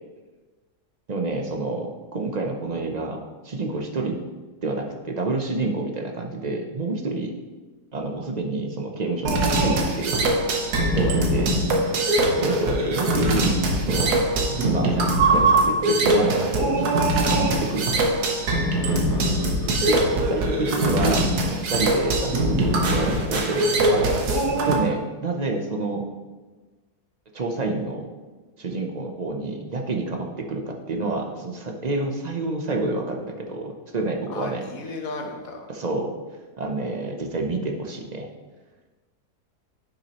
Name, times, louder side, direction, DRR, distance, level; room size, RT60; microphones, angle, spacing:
voice 1, 1.1-4.2 4.6-7.3 7.9-10.3 11.0-11.5 12.4-13.6 13.9-14.2 14.6-16.9 17.2-18.1 19.8-24.2 24.6-26.1 27.3-28.1 28.6-34.6 35.7-36.1 36.6-38.3, right 3 dB, 45° right, 2 dB, 0.5 m, -28 dB
sound 1, 9.3-24.7, right 1 dB, 85° right, 1.6 m, -22 dB
voice 2, 18.8-19.8 34.3-35.7, left 3 dB, 65° left, 3 dB, 1.4 m, -36 dB
10.0 x 6.0 x 3.0 m, 1.3 s
omnidirectional pair, 1.6 m